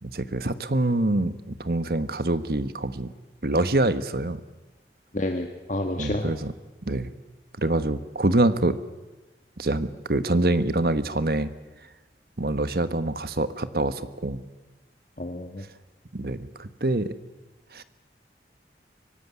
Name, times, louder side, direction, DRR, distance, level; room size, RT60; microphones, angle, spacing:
voice 1, 0.0-3.1 3.4-4.4 6.0-6.5 6.9-7.1 7.6-8.8 9.6-11.5 12.4-14.4 16.1-17.1 17.7-17.8, right 2 dB, 60° right, 12 dB, 1.2 m, -25 dB
voice 2, 5.1-6.4 15.2-15.7, left 1 dB, 45° left, 4 dB, 1.5 m, -29 dB
24.0 x 18.0 x 9.7 m, 1.1 s
head